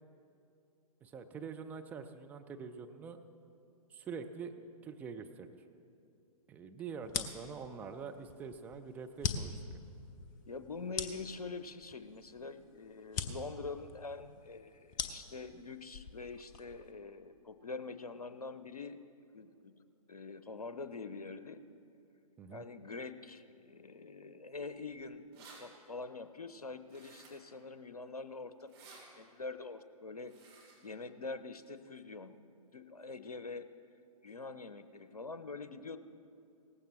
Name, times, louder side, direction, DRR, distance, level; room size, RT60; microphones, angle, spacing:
voice 1, 1.0-3.2 3.9-4.6 4.8-5.5 6.5-9.8 22.4-22.6, right 5 dB, 10° right, 5 dB, 0.4 m, -45 dB
sound 1, 7.0-16.9, left 6 dB, 30° left, 0.8 m, -42 dB
voice 2, 10.5-19.0 19.3-19.7 20.1-21.6 22.5-30.3 30.8-32.4 32.7-33.7 34.2-36.0, left 4 dB, 75° left, 11 dB, 0.7 m, -45 dB
sound 2, 24.9-25.0 25.1-25.6 26.9-27.5 28.6-29.0 30.2-30.8, right 4 dB, 45° right, 3.7 m, -56 dB
18.0 x 15.5 x 3.2 m, 2.6 s
figure-of-eight pair, 120°, 19 cm